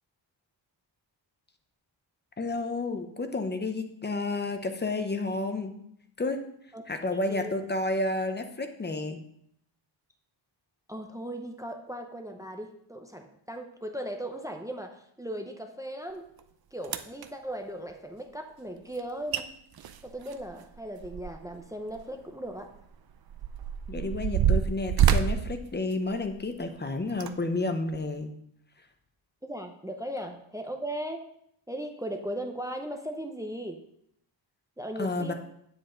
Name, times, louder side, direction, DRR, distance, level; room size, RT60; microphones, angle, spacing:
voice 1, 2.4-5.7 6.2-6.4 6.9-9.2 23.9-28.3 35.0-35.3, left 2 dB, 20° left, 7 dB, 0.8 m, -31 dB
voice 2, 10.9-16.2 16.7-19.4 20.0-22.7 29.4-31.3 31.7-33.8 34.8-35.3, right 1 dB, 5° right, 4 dB, 0.6 m, -37 dB
sound 1, 16.4-16.5 16.8-17.3 19.0-19.1 19.3-19.4 19.8-21.6 21.9-22.0 22.8-26.5 27.1-27.3 27.9-28.0, right 9 dB, 55° right, 0.6 m, -27 dB
9.5 x 8.0 x 3.9 m, 0.71 s
wide cardioid pair, 170°, 46 cm